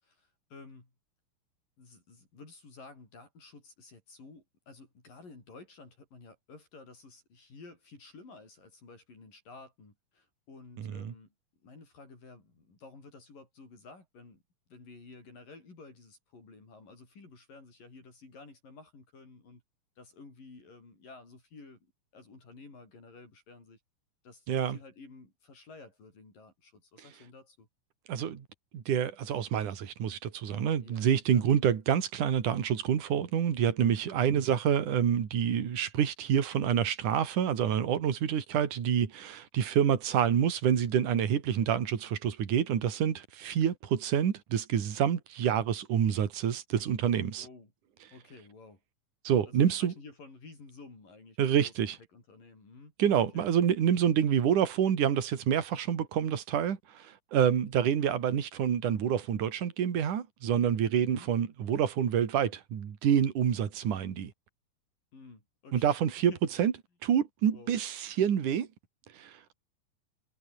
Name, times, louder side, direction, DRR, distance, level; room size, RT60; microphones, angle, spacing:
voice 1, 0.0-0.9 1.8-11.3 11.6-14.4 14.7-19.6 20.0-21.9 22.1-23.8 24.2-27.7 30.8-31.4 34.2-34.5 47.4-47.7 48.1-48.8 49.5-51.7 52.1-52.9 53.3-53.5 61.0-61.3 65.1-65.9 66.3-66.7 67.5-67.8, left 3 dB, 65° left, 9.3 m, -52 dB
voice 2, 10.8-11.1 24.5-24.8 28.1-28.5 28.7-47.5 49.2-49.9 51.4-52.0 53.0-64.3 65.7-66.3 66.6-66.7 67.0-68.7 69.1-69.6, right 9 dB, 60° right, 3.9 m, -27 dB
omnidirectional pair, 4.3 m